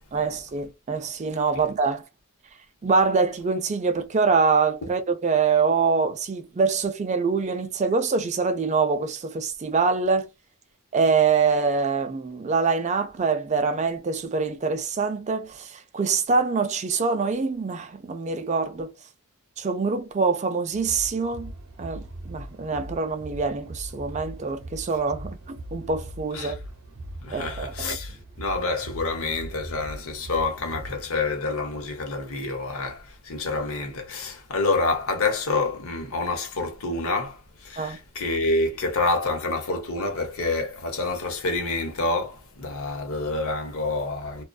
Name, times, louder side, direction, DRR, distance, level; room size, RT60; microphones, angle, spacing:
voice 1, 0.1-2.0 2.8-10.3 10.9-18.9 19.6-21.5 21.8-26.6 27.3-28.0 37.8-38.0, right 4 dB, 30° right, 0.3 m, -24 dB
sound 1, 20.7-31.1, right 1 dB, 60° right, 0.7 m, -40 dB
voice 2, 27.2-44.4, left 3 dB, 70° left, 0.8 m, -28 dB
2.5 x 2.2 x 2.2 m
head